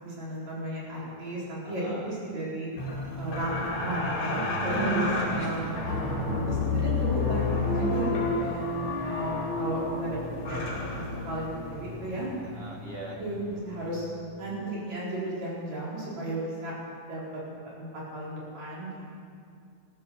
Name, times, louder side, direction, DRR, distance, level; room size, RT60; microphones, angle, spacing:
voice 1, 0.0-2.7 3.2-5.8 6.5-10.2 10.5-10.6 11.0-12.3 13.1-14.1 14.4-16.7 17.1-17.2 17.6-19.2, right 1 dB, 60° right, -6 dB, 5.5 m, -34 dB
voice 2, 1.6-2.2 4.7-5.8 12.4-13.2, right 1 dB, 40° right, -1 dB, 0.8 m, -41 dB
sound 1, 2.8-14.2 14.5-14.6, left 3 dB, 65° left, 3.7 m, -31 dB
14.0 x 13.5 x 7.1 m, 2.3 s
omnidirectional pair, 3.6 m